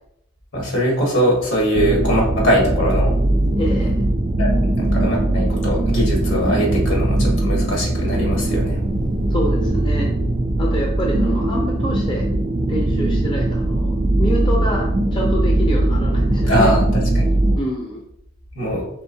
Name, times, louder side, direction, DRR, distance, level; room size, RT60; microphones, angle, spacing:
voice 1, 0.5-3.1 4.4-8.8 16.5-17.4 18.5-18.8, equal, 75° left, -2 dB, 1.6 m, -21 dB
sound 1, 1.7-17.6, right 1 dB, 30° right, 0.4 m, -20 dB
voice 2, 3.6-3.9 9.3-10.1 10.6-12.3 12.7-14.9 15.1-16.7 17.6-18.0, equal, 25° left, -1 dB, 0.5 m, -26 dB
4.4 x 3.5 x 2.7 m, 0.76 s
head